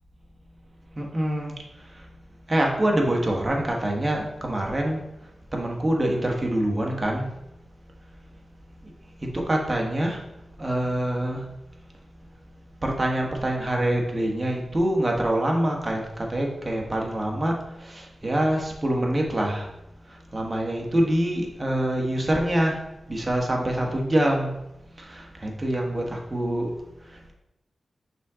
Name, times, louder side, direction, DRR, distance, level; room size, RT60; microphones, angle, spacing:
voice 1, 0.9-1.5 1.9-2.0 2.5-5.0 5.5-7.3 9.2-10.2 10.6-11.4 12.8-19.7 20.1-24.5 25.0-26.7, right 1 dB, 25° right, 0 dB, 1.4 m, -25 dB
5.7 x 3.7 x 4.9 m, 0.91 s
wide cardioid pair, 75°, 0 cm